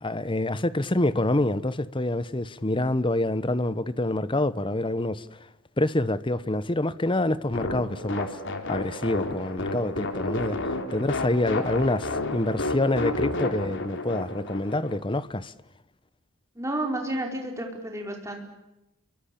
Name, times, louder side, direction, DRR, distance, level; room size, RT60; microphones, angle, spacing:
voice 1, 0.0-5.3 5.8-8.3 8.7-10.6 10.9-15.5, left 1 dB, 20° left, 0.9 m, -26 dB
sound 1, 7.5-15.0, left 2 dB, 55° left, 3.5 m, -31 dB
voice 2, 16.5-18.5, right 1 dB, 15° right, 4.8 m, -31 dB
29.0 x 23.5 x 8.6 m
head